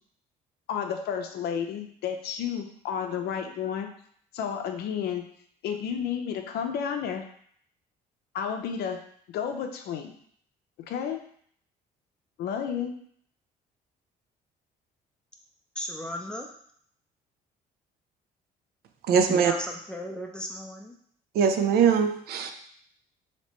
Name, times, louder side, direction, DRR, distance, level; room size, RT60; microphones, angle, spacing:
voice 1, 0.7-3.9 4.3-5.3 5.6-7.2 8.3-9.0 9.3-10.1 10.9-11.2 12.4-12.9, left 7 dB, 70° left, 5 dB, 0.5 m, -31 dB
voice 2, 15.8-16.5 19.3-20.9, left 1 dB, 5° left, 1 dB, 0.5 m, -35 dB
voice 3, 19.1-19.5 21.3-22.5, right 7 dB, 65° right, 6 dB, 0.4 m, -22 dB
3.2 x 2.8 x 3.0 m, 0.62 s
cardioid pair, 110°, 17 cm